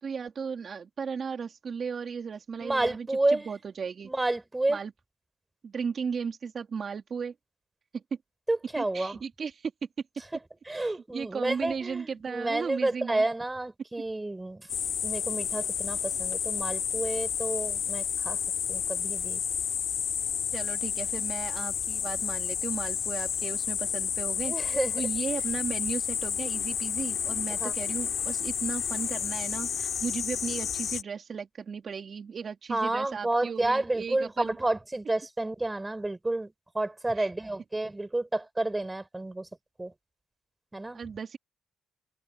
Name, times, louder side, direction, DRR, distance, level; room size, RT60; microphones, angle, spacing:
voice 1, 0.0-4.1 4.7-4.9 5.6-7.3 7.9-8.0 8.8-9.7 10.7-13.2 20.5-34.5 37.2-37.3 40.9-41.4, right 6 dB, 45° right, 2.8 m, -36 dB
voice 2, 2.6-3.5 4.0-4.8 8.5-9.2 10.7-14.7 15.0-18.4 18.7-19.4 24.5-25.0 27.6-27.7 32.7-39.5 39.8-39.9 40.7-41.0, right 2 dB, 15° right, 5.4 m, -30 dB
sound 1, 14.7-31.0, left 8 dB, 60° left, 2.9 m, -31 dB
cardioid pair, 90°, 0 cm